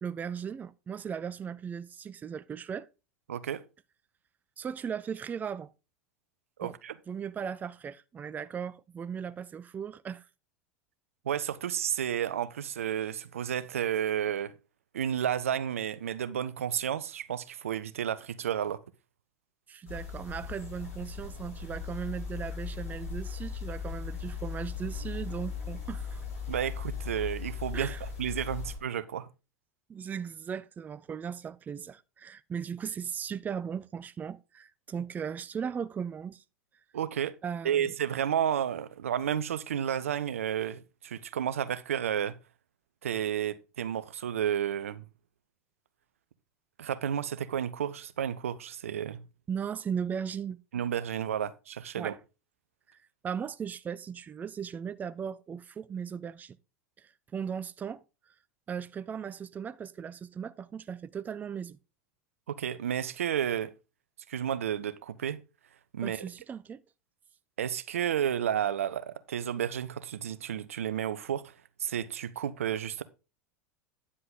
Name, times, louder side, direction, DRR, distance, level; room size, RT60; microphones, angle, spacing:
voice 1, 0.0-2.9 4.6-5.7 6.6-6.8 7.1-10.3 19.7-26.2 27.7-28.0 29.9-36.4 37.4-37.9 49.5-50.6 52.0-52.2 52.9-53.0 53.2-56.6 57.0-58.0 58.7-61.8 66.0-66.8, right 7 dB, 25° right, 0.5 m, -37 dB
voice 2, 3.3-3.6 6.6-6.9 11.2-14.5 14.9-18.8 26.5-27.9 28.2-29.3 36.9-37.3 37.6-42.4 43.0-45.0 46.8-49.2 50.7-52.1 62.5-63.7 64.3-65.4 65.9-66.3 67.6-71.5 71.8-73.0, right 9 dB, 75° right, 0.7 m, -31 dB
sound 1, 19.9-28.8, left 6 dB, 85° left, 6.3 m, -38 dB
9.8 x 7.7 x 3.8 m
hypercardioid pair, 85°, 7 cm